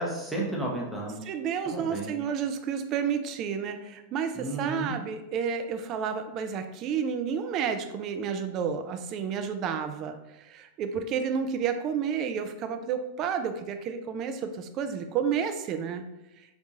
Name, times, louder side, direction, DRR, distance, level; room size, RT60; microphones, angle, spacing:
voice 1, 0.0-1.3 1.7-2.2 4.3-4.9, right 1 dB, 5° right, -2 dB, 0.7 m, -33 dB
voice 2, 1.3-16.0, right 7 dB, 35° right, 7 dB, 0.3 m, -31 dB
3.7 x 2.3 x 2.8 m, 0.95 s
figure-of-eight pair, 90°, 0 cm